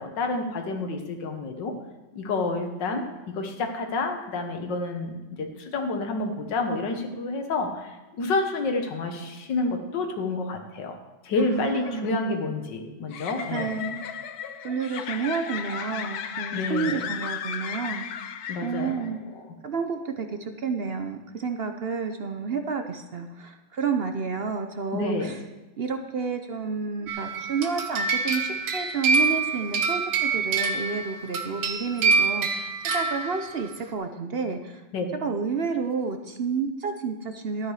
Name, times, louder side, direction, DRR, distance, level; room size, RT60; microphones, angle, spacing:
voice 1, 0.0-1.7 2.1-11.0 11.2-13.7 16.5-17.0 18.5-19.1 19.3-19.4 24.9-25.3 34.9-35.1, left 3 dB, 85° left, 5 dB, 1.9 m, -29 dB
voice 2, 11.4-12.2 13.5-14.0 14.6-18.1 18.6-19.2 19.6-25.4 25.8-34.8 35.2-37.7, right 5 dB, 60° right, 7 dB, 0.6 m, -30 dB
sound 1, 11.5-19.1, left 8 dB, 65° left, 1.2 m, -35 dB
sound 2, 27.1-33.7, right 4 dB, 85° right, 1.7 m, -26 dB
13.0 x 9.7 x 4.8 m, 1.1 s
omnidirectional pair, 1.9 m